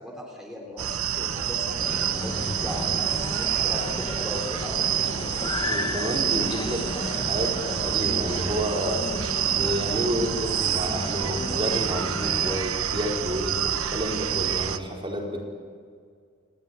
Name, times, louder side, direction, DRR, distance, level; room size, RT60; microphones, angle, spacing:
voice 1, 0.0-5.0, equal, ahead, -2 dB, 3.9 m, -38 dB
sound 1, 0.8-14.8, right 9 dB, 90° right, 1.1 m, -28 dB
sound 2, 1.8-12.6, left 2 dB, 20° left, 1.0 m, -34 dB
voice 2, 5.6-9.1 9.5-15.4, equal, 25° right, -1 dB, 4.7 m, -30 dB
29.0 x 19.5 x 9.4 m, 2.1 s
head